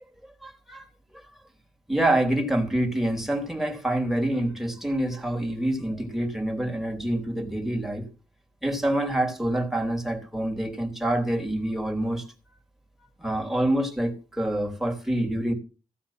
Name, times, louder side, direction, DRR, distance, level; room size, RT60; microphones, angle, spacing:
voice 1, 0.4-0.9 1.1-1.3 1.9-8.0 8.6-12.3 13.2-15.5, right 1 dB, ahead, 3.7 m, -26 dB
16.0 x 8.4 x 5.9 m
cardioid pair, 75°, 15 cm